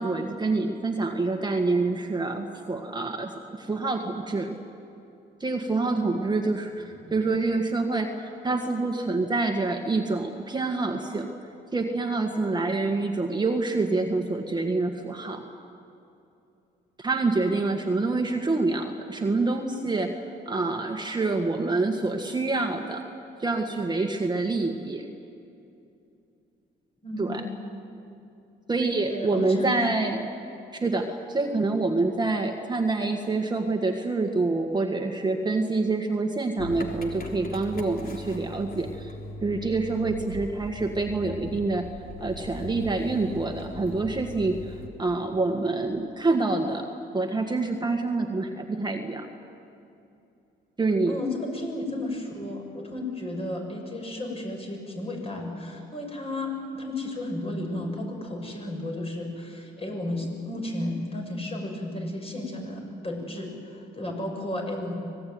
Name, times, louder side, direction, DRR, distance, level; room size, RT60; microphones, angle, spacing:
voice 1, 0.0-4.6 5.4-11.3 11.7-15.5 17.0-23.0 23.4-25.1 27.2-27.4 28.7-30.3 30.7-39.1 39.4-49.3 50.8-51.1, right 3 dB, 20° right, 3 dB, 1.8 m, -27 dB
voice 2, 6.8-7.1 27.0-27.4 29.1-29.8 51.1-64.9, left 1 dB, 30° left, 1 dB, 7.4 m, -33 dB
Motor vehicle (road) / Engine starting, 36.6-44.9, left 1 dB, 50° left, 3.6 m, -40 dB
25.0 x 20.0 x 9.6 m, 2.7 s
cardioid pair, 90°, 20 cm